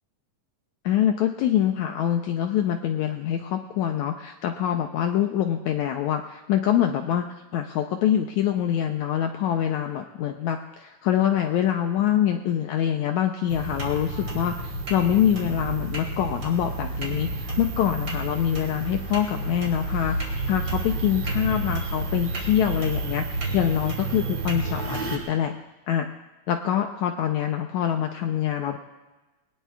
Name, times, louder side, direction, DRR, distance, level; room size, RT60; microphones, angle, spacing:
voice 1, 0.8-7.3 7.5-23.3 23.5-25.5 25.9-26.1 26.5-28.8, left 10 dB, 80° left, 5 dB, 1.8 m, -25 dB
sound 1, 13.5-25.2, right 2 dB, 35° right, 3.2 m, -30 dB
22.5 x 19.5 x 2.4 m, 1.1 s
omnidirectional pair, 3.9 m